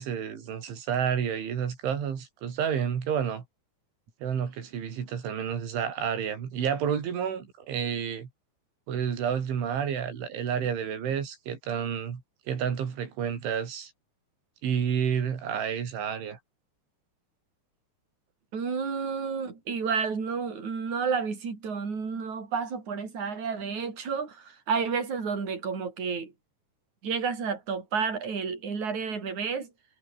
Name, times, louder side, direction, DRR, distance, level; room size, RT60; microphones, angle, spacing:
voice 1, 0.0-3.4 4.2-8.3 8.9-12.2 12.5-13.9 14.6-16.4, right 8 dB, 90° right, 6.4 m, -30 dB
voice 2, 18.5-26.3 27.0-29.7, right 5 dB, 40° right, 6.6 m, -31 dB
omnidirectional pair, 5.3 m